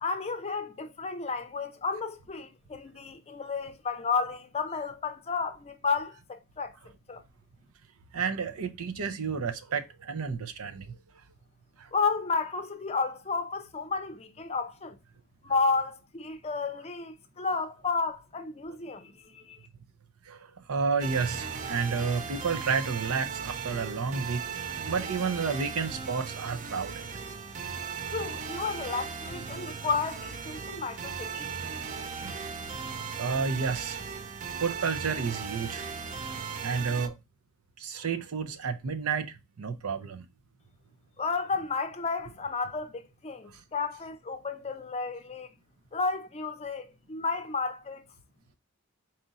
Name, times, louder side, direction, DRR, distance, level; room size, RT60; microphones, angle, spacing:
voice 1, 0.0-6.7 7.1-7.2 11.9-15.0 15.4-19.6 28.1-31.6 41.2-45.5 45.9-48.0, left 4 dB, 30° left, 0.5 m, -32 dB
voice 2, 8.1-11.0 11.8-11.9 20.3-27.1 32.2-32.5 33.2-34.2 34.6-35.8 36.3-37.2 37.8-40.2, right 5 dB, 85° right, 0.6 m, -31 dB
sound 1, 21.0-37.1, right 6 dB, 35° right, 0.4 m, -37 dB
4.2 x 2.5 x 3.9 m
head